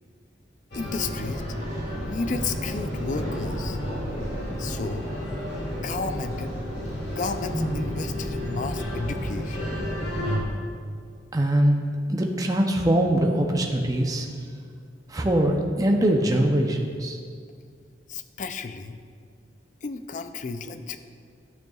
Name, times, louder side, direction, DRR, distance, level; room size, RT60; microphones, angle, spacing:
sound 1, 0.7-10.4, equal, 65° left, 2.2 m, -31 dB
voice 1, 0.7-1.4 2.0-3.8 4.6-5.1 5.8-6.5 7.1-9.7 18.1-19.0 19.8-21.0, left 4 dB, 40° left, 9 dB, 0.4 m, -32 dB
voice 2, 11.3-14.3 15.1-17.2, right 1 dB, 20° right, 2 dB, 0.6 m, -22 dB
11.5 x 9.0 x 2.4 m, 2.1 s
head